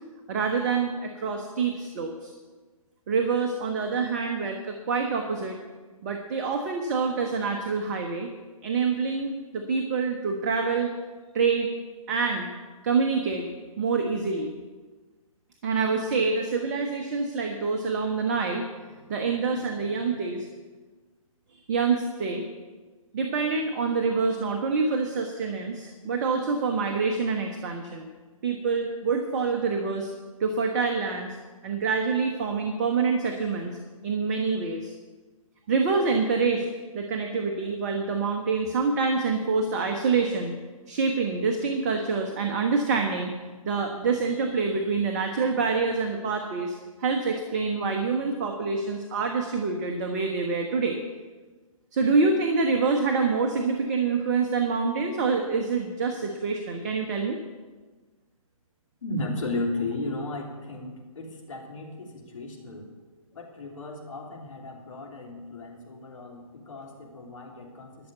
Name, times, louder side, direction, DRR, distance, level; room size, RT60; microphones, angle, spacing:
voice 1, 0.3-2.3 3.1-5.6 6.0-8.3 8.6-10.9 11.3-11.7 12.1-12.5 12.8-13.4 13.8-14.5 15.6-18.7 19.1-20.5 21.5-22.5 23.1-28.1 28.4-30.1 30.4-31.3 31.6-33.8 34.0-34.9 35.7-36.6 36.9-40.5 40.9-43.3 43.6-51.0 51.9-57.4, right 4 dB, 30° right, 4 dB, 1.0 m, -26 dB
voice 2, 59.0-62.9 63.3-68.1, left 2 dB, 60° left, 0 dB, 3.1 m, -35 dB
12.0 x 6.6 x 8.2 m, 1.3 s
figure-of-eight pair, 135°, 18 cm